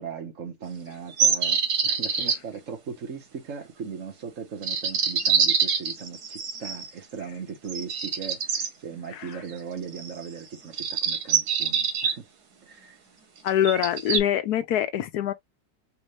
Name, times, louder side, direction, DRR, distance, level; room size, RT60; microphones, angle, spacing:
voice 1, 0.0-12.3 12.6-13.0, right 6 dB, 55° right, 1.7 m, -38 dB
sound 1, 1.2-2.4 4.6-6.9 7.7-8.7 9.9-10.3 10.7-12.1 13.5-14.2, right 6 dB, 90° right, 1.7 m, -25 dB
voice 2, 13.4-15.3, left 11 dB, 85° left, 1.3 m, -24 dB
4.5 x 2.5 x 3.1 m
omnidirectional pair, 1.6 m